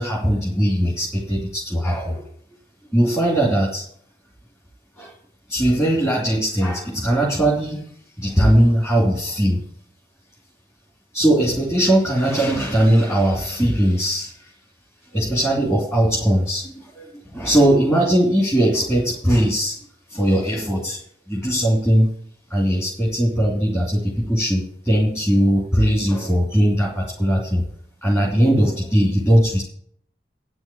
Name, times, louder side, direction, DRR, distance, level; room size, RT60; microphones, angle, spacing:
voice 1, 0.0-2.3 2.9-3.8 5.0-5.1 5.5-7.9 8.2-9.6 11.1-14.5 15.1-19.8 20.1-21.0 21.3-22.1 22.5-27.6 28.0-29.6, equal, 15° left, -4 dB, 2.9 m, -19 dB
9.8 x 6.2 x 8.6 m, 0.62 s
head